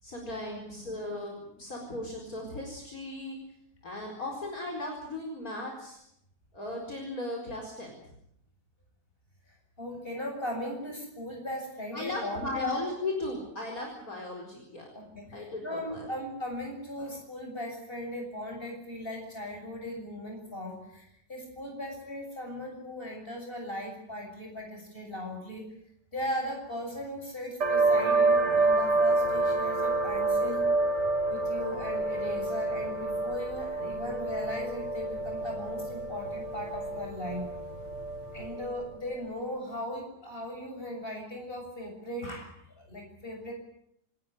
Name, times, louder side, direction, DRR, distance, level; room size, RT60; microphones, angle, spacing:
voice 1, 0.0-3.4 3.8-6.0 6.5-8.0 11.9-14.9 15.3-16.1, left 2 dB, 55° left, 0 dB, 5.0 m, -36 dB
voice 2, 9.8-12.6 14.9-25.7 26.1-30.7 31.3-37.5 38.3-43.5, equal, 30° left, 2 dB, 7.5 m, -38 dB
sound 1, 27.6-38.9, right 2 dB, 75° right, 3.7 m, -28 dB
27.0 x 14.5 x 9.9 m, 0.75 s
omnidirectional pair, 1.8 m